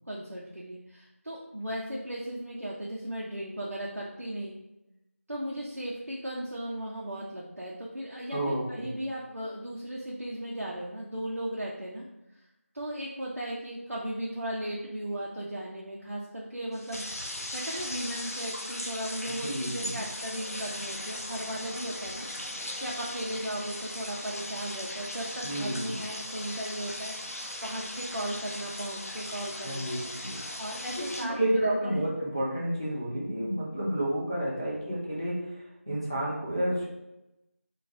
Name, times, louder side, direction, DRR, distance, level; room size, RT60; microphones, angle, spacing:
voice 1, 0.1-4.5 5.3-12.0 12.3-12.4 12.7-27.1 27.6-29.9 30.6-32.0, right 1 dB, 75° right, -5 dB, 0.7 m, -36 dB
voice 2, 8.3-8.9 19.4-20.0 25.4-26.0 29.6-30.4 31.3-35.4 35.9-36.9, right 1 dB, 20° right, -6 dB, 0.7 m, -30 dB
sound 1, 16.7-31.3, left 1 dB, 85° left, 0.6 m, -38 dB
3.8 x 2.3 x 2.7 m, 0.92 s
figure-of-eight pair, 180°, 8 cm